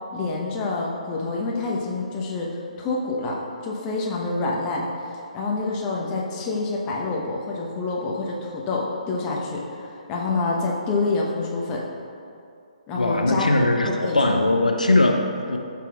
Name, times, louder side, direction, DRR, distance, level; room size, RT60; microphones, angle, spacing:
voice 1, 0.1-4.8 5.3-9.6 10.1-11.8 12.9-14.4, left 3 dB, 20° left, -3 dB, 1.0 m, -27 dB
voice 2, 12.9-15.6, left 2 dB, 80° left, 3 dB, 0.7 m, -20 dB
12.5 x 6.0 x 2.4 m, 2.6 s
figure-of-eight pair, 135°, 4 cm